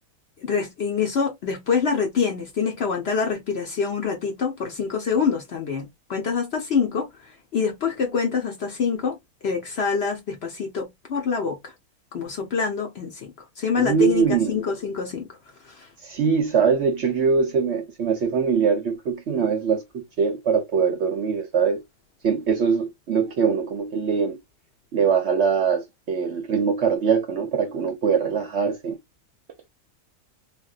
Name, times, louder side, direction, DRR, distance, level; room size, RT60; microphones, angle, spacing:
voice 1, 0.4-7.1 7.5-9.2 9.4-11.7 12.1-15.3 15.7-15.9, left 5 dB, 55° left, 0.8 m, -25 dB
voice 2, 13.8-14.6 16.0-21.8 22.2-24.4 24.9-29.0, right 6 dB, 60° right, 0.7 m, -22 dB
3.7 x 2.5 x 2.3 m
omnidirectional pair, 1.6 m